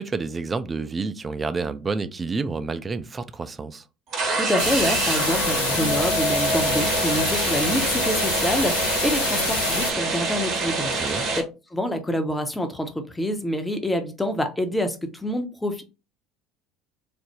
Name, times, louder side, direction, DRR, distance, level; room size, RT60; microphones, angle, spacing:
voice 1, 0.0-3.8 10.9-11.3, right 4 dB, 25° right, 0.4 m, -29 dB
sound 1, 4.1-11.4, right 3 dB, 50° right, 1.0 m, -25 dB
voice 2, 4.4-10.9 11.7-15.8, left 1 dB, 10° left, 0.7 m, -27 dB
sound 2, 4.6-9.9, left 6 dB, 80° left, 0.5 m, -27 dB
3.2 x 2.0 x 2.7 m
figure-of-eight pair, 65°, 0 cm